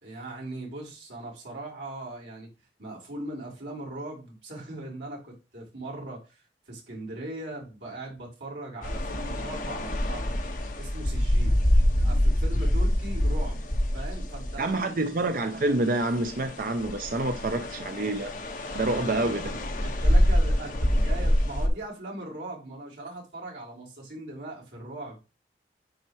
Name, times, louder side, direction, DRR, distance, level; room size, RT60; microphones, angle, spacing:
voice 1, 0.0-2.5 2.8-10.3 10.8-11.7 11.9-13.6 13.9-14.9 18.7-19.1 19.8-25.2, right 2 dB, 80° right, 3.8 m, -39 dB
sound 1, 8.8-15.0 15.5-21.7, equal, 50° left, 1.6 m, -26 dB
voice 2, 14.6-18.3 18.7-19.5, right 2 dB, 50° right, 0.6 m, -27 dB
10.0 x 4.2 x 3.2 m
head